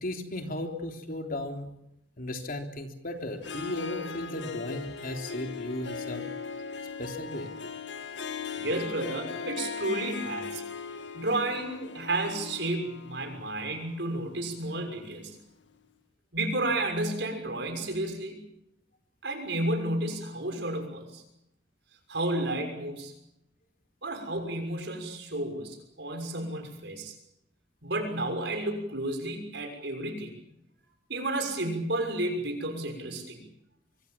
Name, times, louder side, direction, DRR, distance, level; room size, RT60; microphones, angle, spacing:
voice 1, 0.0-1.7 2.2-6.3 7.0-7.5, left 1 dB, 50° left, 4 dB, 3.4 m, -35 dB
Harp, 3.4-15.2, left 6 dB, 80° left, 1.9 m, -39 dB
voice 2, 8.6-10.6 11.1-15.4 16.3-18.4 19.2-21.2 22.1-23.1 24.0-27.1 27.8-30.4 31.1-33.4, right 1 dB, 65° right, 5 dB, 6.4 m, -32 dB
24.5 x 24.0 x 7.4 m, 0.80 s
head